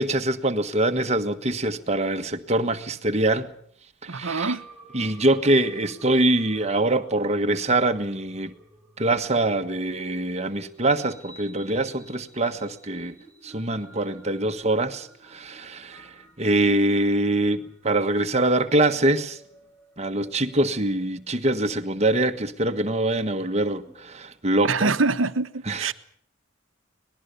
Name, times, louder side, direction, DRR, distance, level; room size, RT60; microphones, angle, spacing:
voice 1, 0.0-3.5 4.0-4.6 4.9-8.5 9.0-13.1 13.4-19.4 20.0-24.9 25.7-25.9, right 2 dB, 35° right, 1.5 m, -24 dB
voice 2, 4.1-4.6 24.6-25.9, right 3 dB, 85° right, 1.1 m, -24 dB
sound 1, 4.4-23.9, right 3 dB, 10° left, 5.0 m, -51 dB
24.5 x 19.5 x 6.9 m
head